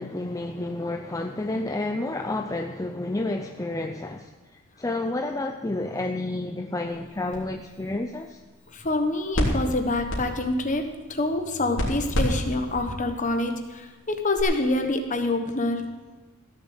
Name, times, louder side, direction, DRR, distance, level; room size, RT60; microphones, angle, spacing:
voice 1, 0.0-8.4, left 2 dB, 15° left, 5 dB, 0.5 m, -30 dB
sound 1, 6.9-14.4, equal, 60° left, 3.3 m, -32 dB
voice 2, 8.7-15.8, left 2 dB, 35° left, 5 dB, 1.2 m, -26 dB
15.5 x 7.1 x 7.8 m, 1.2 s
head